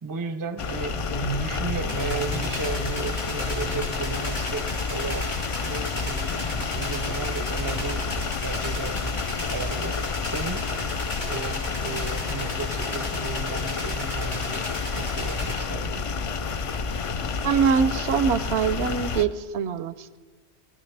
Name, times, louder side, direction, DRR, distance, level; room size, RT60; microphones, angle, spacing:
voice 1, 0.0-5.3 5.6-8.1 8.4-9.2 9.5-10.7 11.2-14.6 14.9-16.0, right 4 dB, 25° right, 9 dB, 0.5 m, -34 dB
sound 1, 0.6-19.3, left 5 dB, 55° left, 0.3 m, -29 dB
sound 2, 1.0-4.3 4.7-8.9 9.3-9.6 10.2-10.5 10.8-11.1 11.7-11.8 12.1-12.2 13.4-13.5 14.2-15.1 16.2-16.4 16.8-16.9 17.2-17.3, right 2 dB, 30° left, 0.8 m, -38 dB
sound 3, 1.9-15.5, left 1 dB, 80° left, 5.9 m, -36 dB
voice 2, 17.4-20.2, right 6 dB, 85° right, 14 dB, 0.9 m, -24 dB
18.5 x 15.5 x 3.3 m, 1.3 s
omnidirectional pair, 1.1 m